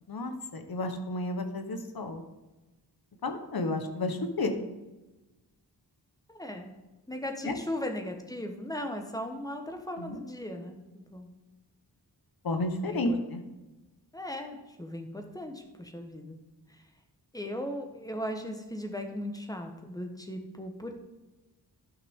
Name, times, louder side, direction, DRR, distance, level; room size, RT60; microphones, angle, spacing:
voice 1, 0.1-2.2 3.2-4.5 7.4-7.6 10.0-10.2 12.4-13.4, left 2 dB, 60° left, 6 dB, 1.1 m, -32 dB
voice 2, 6.3-6.7 7.1-11.3 12.8-13.2 14.1-16.4 17.3-20.9, left 1 dB, 10° left, 4 dB, 1.2 m, -37 dB
12.0 x 5.7 x 3.7 m, 1.1 s
wide cardioid pair, 90°, 42 cm